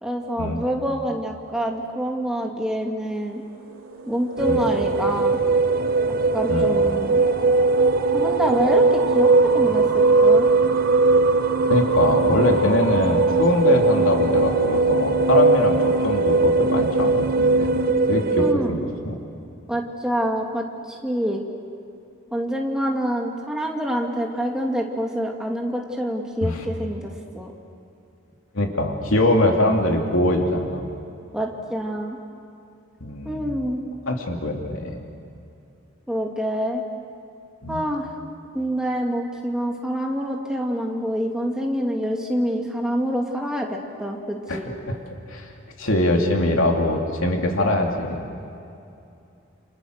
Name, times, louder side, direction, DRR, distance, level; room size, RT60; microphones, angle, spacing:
voice 1, 0.0-3.4 4.1-5.4 6.3-7.2 8.1-9.8 10.2-10.5 18.4-18.8 19.7-21.4 22.3-27.5 31.3-32.2 33.3-33.8 36.1-36.8 37.7-38.1 38.5-44.7, equal, 5° right, 0 dB, 2.3 m, -26 dB
sound 1, 3.2-17.9, right 2 dB, 85° right, 2.9 m, -30 dB
sound 2, 4.4-18.5, right 3 dB, 45° right, 0.7 m, -20 dB
voice 2, 11.7-15.8 16.0-17.8 18.1-18.8 19.0-19.1 26.4-26.6 28.5-30.8 33.0-33.5 34.1-35.0 37.6-37.8 44.5-45.0 45.3-45.5 45.8-48.2, left 1 dB, 80° left, 2 dB, 2.8 m, -22 dB
29.0 x 28.0 x 6.6 m, 2.6 s
head